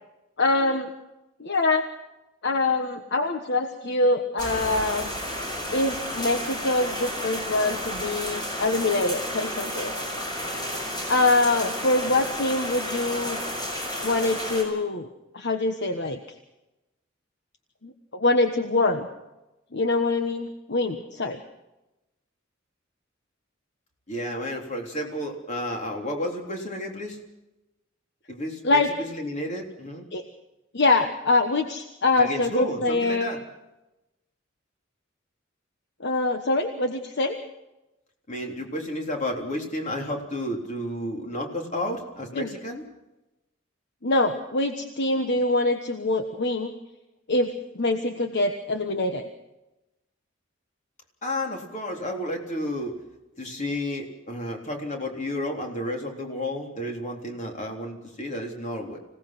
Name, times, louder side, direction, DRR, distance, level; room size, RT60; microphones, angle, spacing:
voice 1, 0.4-0.9 1.4-1.9 2.4-5.1 5.7-9.9 11.1-13.4 14.0-15.1 15.3-16.2 17.8-19.1 19.7-21.4 28.6-28.9 30.1-30.2 30.7-33.3 36.0-37.4 42.3-42.5 44.0-46.7 47.3-49.3, left 2 dB, 60° left, 6 dB, 1.3 m, -24 dB
sound 1, 4.4-14.6, equal, 20° left, 6.4 m, -32 dB
voice 2, 24.1-27.2 28.3-30.1 32.2-33.4 38.3-42.8 51.2-53.0 53.4-59.0, left 1 dB, 40° left, 2 dB, 3.7 m, -31 dB
26.0 x 17.5 x 6.0 m, 0.97 s
head